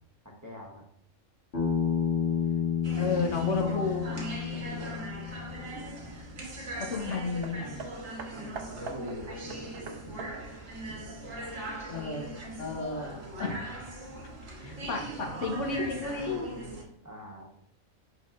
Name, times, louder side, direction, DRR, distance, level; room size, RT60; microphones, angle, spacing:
voice 1, 0.4-0.8 4.5-5.1 8.6-9.4 17.0-17.6, equal, 15° right, -2 dB, 1.0 m, -44 dB
Bass guitar, 1.5-5.8, left 7 dB, 60° left, 1.9 m, -30 dB
sound 1, 2.8-16.8, right 1 dB, 90° right, 1.8 m, -40 dB
voice 2, 3.0-4.2 6.9-7.8 11.9-12.3 12.6-13.9 14.6-16.5, left 4 dB, 75° left, 1 dB, 1.3 m, -32 dB
Hammer, 7.1-11.8 12.7-12.8, right 5 dB, 60° right, 0.8 m, -45 dB
10.5 x 3.8 x 2.5 m, 0.69 s
omnidirectional pair, 1.3 m